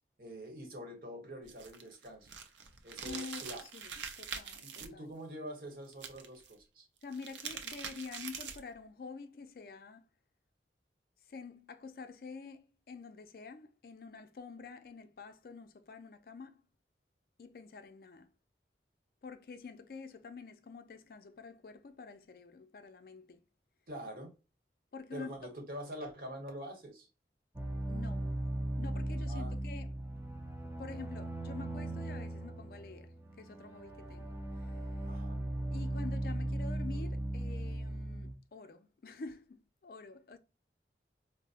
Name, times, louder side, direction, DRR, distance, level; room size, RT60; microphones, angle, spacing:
voice 1, 0.2-2.3 2.8-3.6 4.6-6.9 23.9-24.3 25.1-27.1 29.3-29.5 35.0-35.4, right 1 dB, 55° right, 1.0 m, -45 dB
sound 1, 1.4-4.9 5.9-6.5 7.0-8.7, right 6 dB, 90° right, 0.5 m, -44 dB
voice 2, 3.0-3.4 3.7-3.8 4.2-4.7 4.9-5.0 7.0-10.0 11.3-12.6 12.9-16.6 17.4-18.3 19.2-23.4 24.9-25.3 27.9-28.3 28.8-29.9 30.8-33.1 33.4-34.4 35.7-39.6 39.8-40.4, left 4 dB, 55° left, 0.4 m, -47 dB
sound 2, 27.6-38.3, right 1 dB, 15° right, 0.4 m, -38 dB
4.1 x 2.0 x 2.4 m
head